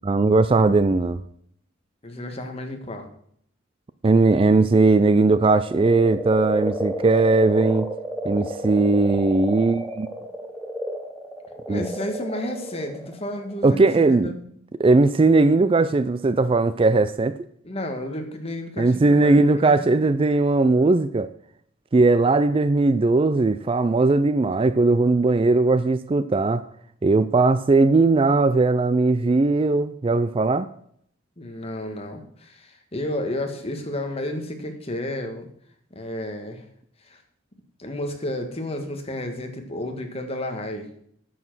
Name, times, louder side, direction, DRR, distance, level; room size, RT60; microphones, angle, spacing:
voice 1, 0.0-1.2 4.0-7.9 8.2-10.1 11.7-11.8 13.6-14.3 14.8-17.3 18.8-21.3 21.9-26.6 27.0-30.7, right 3 dB, 30° right, 14 dB, 0.4 m, -19 dB
voice 2, 2.0-3.1 11.7-14.5 17.6-20.0 31.4-35.5 35.9-36.6 37.0-37.2 37.8-40.9, left 1 dB, 30° left, 4 dB, 1.6 m, -32 dB
sound 1, 5.4-14.1, right 1 dB, ahead, 1.1 m, -32 dB
9.6 x 7.3 x 6.1 m, 0.66 s
head